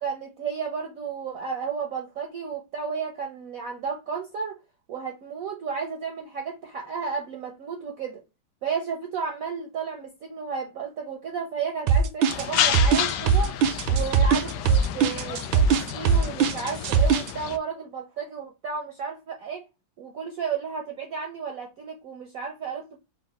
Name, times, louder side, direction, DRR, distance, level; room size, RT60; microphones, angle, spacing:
voice 1, 0.0-4.6 4.9-8.2 8.6-13.6 13.9-19.6 20.0-23.0, right 6 dB, 60° right, 0.9 m, -33 dB
sound 1, 11.9-17.3, right 7 dB, 80° right, 1.4 m, -20 dB
sound 2, 12.3-17.6, left 10 dB, 75° left, 1.2 m, -30 dB
4.0 x 2.3 x 4.1 m
omnidirectional pair, 2.1 m